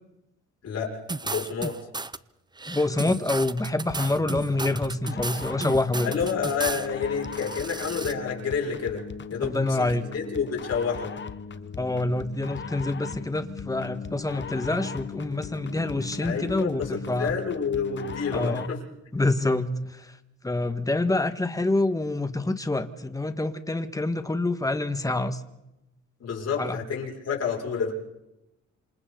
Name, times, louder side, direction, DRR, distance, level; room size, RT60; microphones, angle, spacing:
voice 1, 0.6-1.8 6.0-9.0 9.3-9.9 10.1-11.1 16.2-18.8 26.2-27.9, left 6 dB, 55° left, -1 dB, 6.2 m, -29 dB
sound 1, 1.1-2.2 2.6-6.9 7.2-8.1, right 3 dB, 15° right, 0.7 m, -34 dB
voice 2, 2.7-6.1 9.4-10.0 11.8-17.3 18.3-18.7 19.1-20.1 20.4-25.4 26.6-26.8, left 2 dB, 10° left, 9 dB, 1.7 m, -26 dB
sound 2, 3.9-18.8, left 6 dB, 40° left, 1.2 m, -39 dB
27.5 x 27.5 x 4.0 m, 0.93 s
cardioid pair, 90°, 30 cm